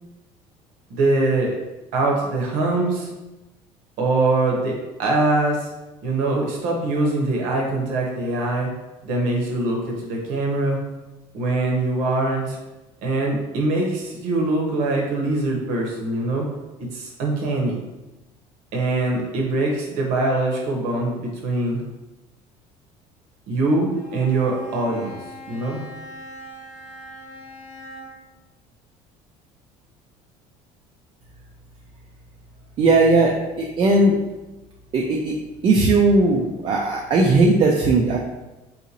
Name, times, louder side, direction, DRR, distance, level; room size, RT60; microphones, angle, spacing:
voice 1, 0.9-1.6 1.9-3.1 4.0-5.7 6.0-8.7 9.0-10.8 11.3-12.6 13.0-16.5 16.8-17.8 18.7-21.8 23.5-25.2 25.5-25.8, right 2 dB, 85° right, -1 dB, 0.9 m, -23 dB
Bowed string instrument, 23.9-28.4, left 1 dB, 90° left, 0.6 m, -40 dB
voice 2, 32.8-34.2 34.9-35.3 35.6-38.2, right 2 dB, 40° right, -1 dB, 0.4 m, -18 dB
3.9 x 2.6 x 2.9 m, 1.1 s
cardioid pair, 125°, 13 cm